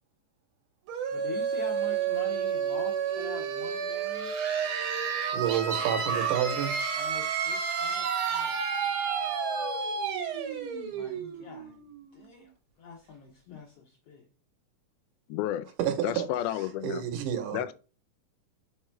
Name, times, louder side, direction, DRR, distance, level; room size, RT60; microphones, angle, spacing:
sound 1, 0.9-12.4, right 6 dB, 60° right, 1.4 m, -31 dB
voice 1, 1.1-4.3 5.8-5.9 6.9-8.5 10.9-11.7 12.1-12.5 12.8-14.2, left 5 dB, 70° left, 1.6 m, -45 dB
voice 2, 5.3-6.8 15.8-16.3 16.6-17.6, right 10 dB, 80° right, 2.4 m, -29 dB
voice 3, 15.3-15.7 16.0-17.0 17.5-17.7, left 12 dB, 85° left, 2.0 m, -31 dB
5.2 x 4.8 x 4.5 m
omnidirectional pair, 3.6 m